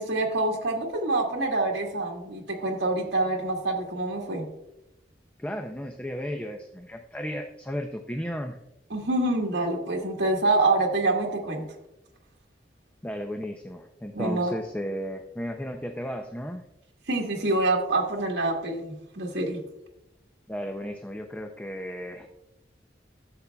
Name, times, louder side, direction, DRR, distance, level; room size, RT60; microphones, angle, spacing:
voice 1, 0.0-4.4 8.9-11.6 14.1-14.5 17.1-19.6, right 2 dB, 70° right, -1 dB, 1.5 m, -26 dB
voice 2, 5.4-8.6 13.0-16.6 20.5-22.3, equal, 10° left, 5 dB, 0.4 m, -34 dB
13.0 x 7.1 x 2.3 m, 0.89 s
head